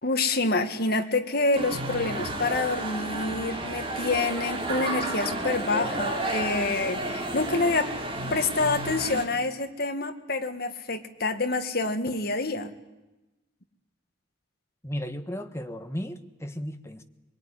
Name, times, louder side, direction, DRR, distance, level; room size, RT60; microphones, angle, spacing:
voice 1, 0.0-7.9 8.3-12.7, left 3 dB, 50° left, 7 dB, 1.8 m, -27 dB
sound 1, 1.5-9.3, right 1 dB, 25° right, 3.4 m, -32 dB
voice 2, 14.8-17.0, equal, 15° left, 7 dB, 1.3 m, -35 dB
23.0 x 22.0 x 9.9 m, 1.1 s
head